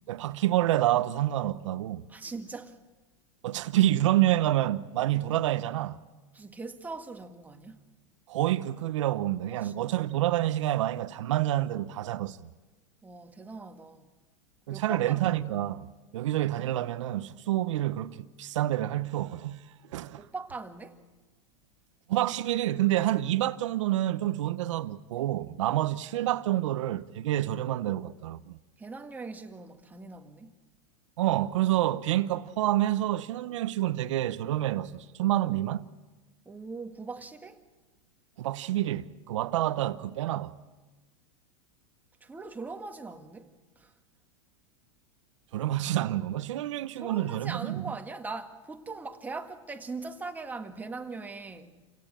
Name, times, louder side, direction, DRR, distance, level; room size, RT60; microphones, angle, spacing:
voice 1, 0.1-2.0 3.4-6.0 8.3-12.5 14.7-15.9 16.1-19.7 19.9-20.2 22.1-28.6 31.2-35.9 38.4-40.5 45.5-47.9, right 14 dB, 75° right, 1.0 m, -28 dB
voice 2, 2.1-2.8 6.3-7.8 9.5-9.9 13.0-14.1 14.7-15.3 20.2-21.1 28.8-30.5 36.4-37.6 42.2-43.9 47.0-51.8, right 3 dB, 10° right, 1.7 m, -41 dB
29.0 x 17.0 x 8.7 m
supercardioid pair, 130°, 16 cm